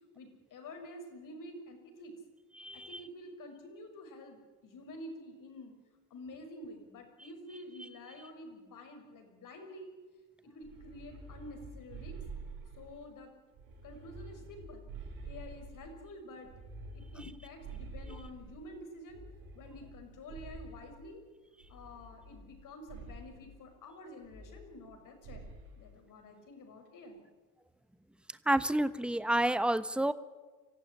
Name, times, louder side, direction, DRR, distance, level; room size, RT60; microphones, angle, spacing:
voice 1, 0.1-2.2 2.7-5.7 6.1-9.9 10.4-12.2 12.7-13.3 13.8-14.9 15.3-16.5 16.9-19.2 19.5-21.2 21.7-25.4 25.7-27.2, left 1 dB, 45° left, 5 dB, 6.0 m, -49 dB
voice 2, 2.6-3.0 28.5-30.1, right 1 dB, ahead, 14 dB, 1.1 m, -29 dB
sound 1, 10.6-13.1 13.5-16.0 16.4-18.6 19.1-21.0 21.6-22.6 22.9-23.4 24.2-25.0 25.2-25.7, right 3 dB, 55° right, 6.7 m, -48 dB
25.0 x 15.0 x 9.9 m, 1.3 s
hypercardioid pair, 75°, 42 cm